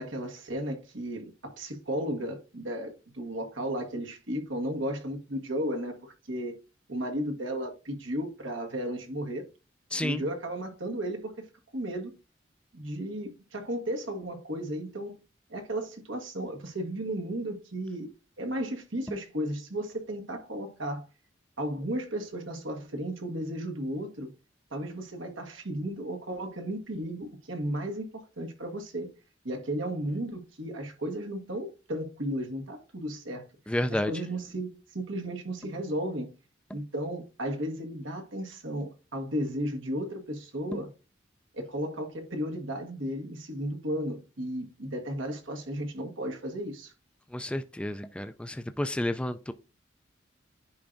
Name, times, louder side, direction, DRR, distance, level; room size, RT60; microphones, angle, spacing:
voice 1, 0.0-6.5 6.9-9.5 10.0-11.5 11.7-12.1 12.7-15.2 15.5-18.1 18.4-21.1 21.6-24.3 24.7-29.1 29.4-33.4 33.9-36.3 36.7-40.9 41.5-46.9, right 1 dB, 85° right, 1.5 m, -34 dB
voice 2, 9.9-10.2 33.7-34.1 47.3-49.5, left 1 dB, 5° left, 0.3 m, -30 dB
10.5 x 4.5 x 2.6 m
head